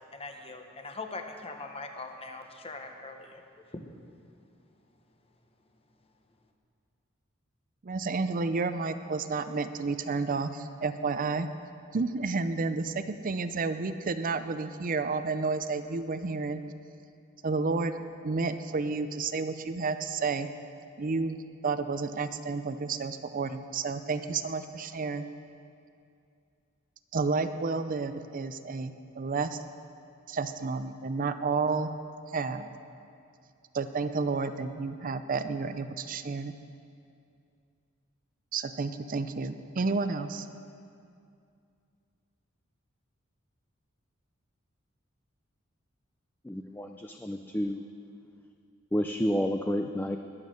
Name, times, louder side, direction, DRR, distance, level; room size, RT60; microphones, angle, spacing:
voice 1, 0.1-3.9, left 3 dB, 30° left, 5 dB, 1.0 m, -42 dB
voice 2, 7.8-11.5 11.9-16.6 17.4-17.9 18.2-20.5 21.0-25.3 27.1-29.6 30.3-31.9 32.3-32.7 33.7-36.5 38.5-40.5, right 4 dB, 45° right, 10 dB, 0.5 m, -31 dB
voice 3, 46.4-47.8 48.9-50.2, equal, 10° left, 5 dB, 0.4 m, -30 dB
20.5 x 7.4 x 6.5 m, 2.4 s
head